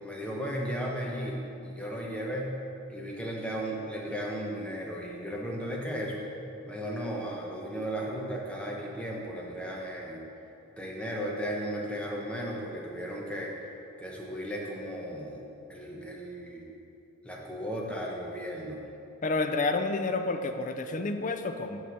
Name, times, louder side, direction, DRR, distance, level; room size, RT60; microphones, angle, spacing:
voice 1, 0.0-2.6 2.9-6.2 6.6-10.2 10.8-13.5 14.0-15.4 15.7-16.7 17.2-18.8, equal, 5° left, -3 dB, 0.9 m, -35 dB
voice 2, 19.2-21.8, left 3 dB, 35° left, 7 dB, 0.4 m, -29 dB
6.1 x 5.5 x 5.9 m, 2.7 s
head